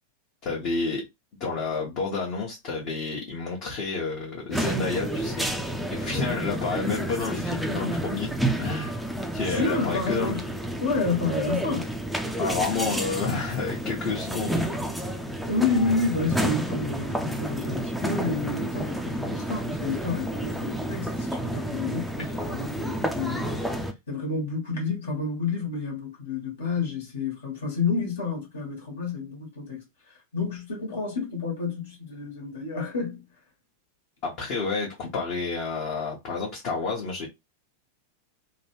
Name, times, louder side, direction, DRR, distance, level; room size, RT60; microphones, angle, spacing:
voice 1, 0.4-1.0 1.4-5.5 5.9-9.0 9.3-10.4 12.4-14.8 22.2-22.3 34.2-37.3, left 4 dB, 40° left, 1.0 m, -30 dB
sound 1, 4.5-23.9, right 1 dB, ahead, 0.4 m, -30 dB
voice 2, 6.1-6.4 9.5-10.5 10.8-11.9 15.5-29.8 30.3-33.2, left 4 dB, 65° left, 1.4 m, -29 dB
3.0 x 2.3 x 3.0 m
figure-of-eight pair, 90°, 0 cm